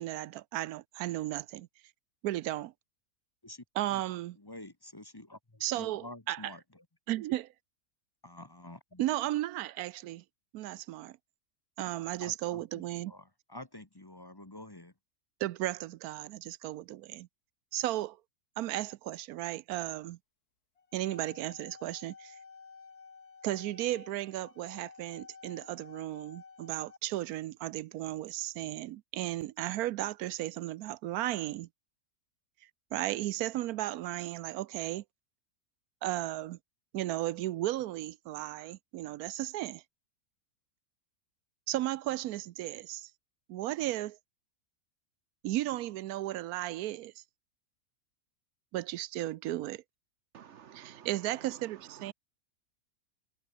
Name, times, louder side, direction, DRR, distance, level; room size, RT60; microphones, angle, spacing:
voice 1, 0.0-1.7 2.2-2.7 3.8-4.4 5.6-6.5 7.1-7.5 9.0-10.2 10.5-11.2 11.8-13.1 15.4-17.3 17.7-18.2 18.6-20.2 20.9-22.4 23.4-31.7 32.9-35.0 36.0-36.6 36.9-39.8 41.7-43.1 43.5-44.2 45.4-47.2 48.7-49.8 50.7-52.1, right 15 dB, 80° right, 1.1 m, -35 dB
voice 2, 4.4-6.8 8.2-9.0 12.2-14.9, left 1 dB, 15° left, 1.4 m, -49 dB
sound 1, 20.8-27.0, left 5 dB, 85° left, 2.9 m, -53 dB
voice 3, 50.3-52.1, right 8 dB, 55° right, 1.0 m, -52 dB
omnidirectional pair, 1.6 m